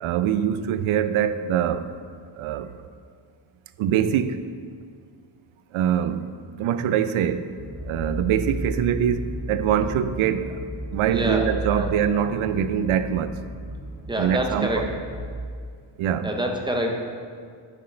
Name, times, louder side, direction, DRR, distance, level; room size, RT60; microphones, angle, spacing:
voice 1, 0.0-1.9 2.4-2.7 3.8-4.4 5.7-6.2 6.6-7.5 7.8-10.6 10.9-13.3 14.2-14.9 16.0-16.4, right 9 dB, 85° right, 12 dB, 0.5 m, -23 dB
sound 1, 7.6-15.2, equal, 40° left, 1.8 m, -34 dB
voice 2, 11.1-11.9 14.1-14.9 16.2-17.0, right 1 dB, 10° right, 2 dB, 0.5 m, -26 dB
9.3 x 6.4 x 3.3 m, 2.1 s
wide cardioid pair, 180°, 48 cm